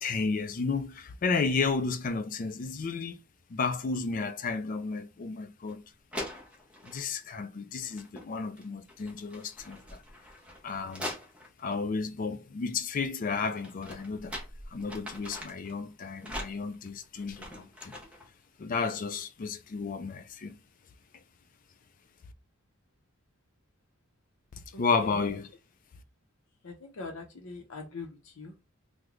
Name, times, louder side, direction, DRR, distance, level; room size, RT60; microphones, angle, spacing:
voice 1, 0.0-3.2 3.5-5.8 6.8-10.0 10.6-11.1 11.6-14.4 14.7-18.0 18.6-20.5 24.8-25.5, left 4 dB, 40° left, 0.3 m, -32 dB
sound 1, 5.7-5.8 6.1-7.1 7.8-8.3 8.6-11.8 13.3-15.7 16.2-18.3, equal, 5° right, 0.6 m, -42 dB
voice 2, 24.7-25.2 26.6-28.7, left 3 dB, 80° left, 0.6 m, -43 dB
3.1 x 2.1 x 3.6 m
head